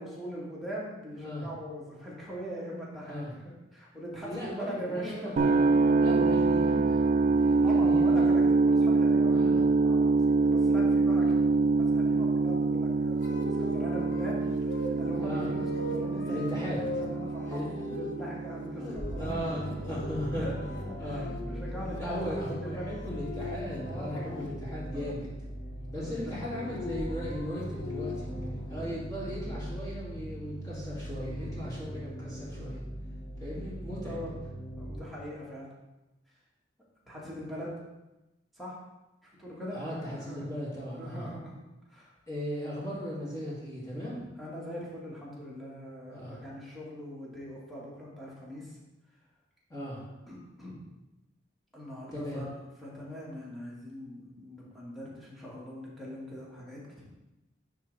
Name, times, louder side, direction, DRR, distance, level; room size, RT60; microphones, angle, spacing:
voice 1, 0.0-3.2 3.7-5.5 7.6-11.3 11.7-16.5 17.0-19.7 20.3-20.5 20.9-22.3 22.5-22.9 23.9-24.4 24.9-25.1 26.0-26.3 31.2-31.6 34.0-34.3 34.8-35.7 37.1-37.7 38.5-38.8 39.2-40.5 41.0-41.6 41.9-42.1 44.4-48.8 50.3-50.8 51.7-52.5 52.8-57.0, equal, ahead, -6 dB, 1.5 m, -41 dB
voice 2, 1.1-1.5 3.1-3.3 4.2-5.7 6.0-8.3 9.2-9.6 11.2-11.4 15.2-15.5 16.3-17.1 17.5-18.1 18.8-20.5 21.0-21.3 21.8-25.3 25.9-28.3 28.7-32.8 33.4-34.2 39.7-41.3 42.3-44.2 46.1-46.4 49.7-50.1 52.1-52.4, equal, 20° left, -7 dB, 2.3 m, -37 dB
sound 1, 5.4-21.3, right 3 dB, 45° right, 0.3 m, -26 dB
sound 2, 13.2-25.1 26.3-28.5, left 1 dB, 80° left, 0.8 m, -41 dB
sound 3, 19.0-35.0, right 1 dB, 35° left, 2.1 m, -40 dB
10.0 x 3.7 x 3.2 m, 0.99 s
head